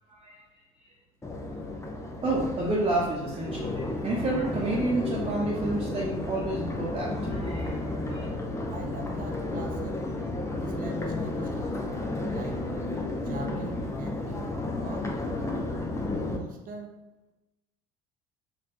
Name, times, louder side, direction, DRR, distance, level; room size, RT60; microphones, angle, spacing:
voice 1, 0.1-0.4 2.2-7.8 8.1-8.2, right 2 dB, 30° right, -4 dB, 1.0 m, -30 dB
Crowd, 1.2-16.4, left 2 dB, 15° left, 0.8 m, -32 dB
voice 2, 8.7-10.1 10.6-12.0 12.3-12.7 13.2-15.2 16.2-17.0, right 3 dB, 50° right, 3 dB, 0.7 m, -42 dB
4.2 x 2.6 x 4.3 m, 1.0 s
hypercardioid pair, 70°, 19 cm